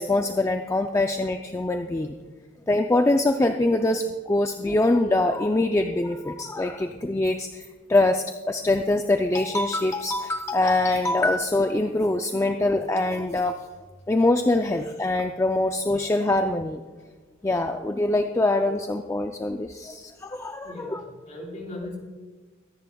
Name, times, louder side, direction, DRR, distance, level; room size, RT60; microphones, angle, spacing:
voice 1, 0.0-2.1 2.7-13.5 14.1-16.8 17.4-21.0, left 2 dB, 15° left, 5 dB, 0.3 m, -24 dB
voice 2, 20.6-22.0, left 1 dB, 40° left, -1 dB, 3.3 m, -38 dB
24.0 x 10.5 x 2.3 m, 1.4 s
head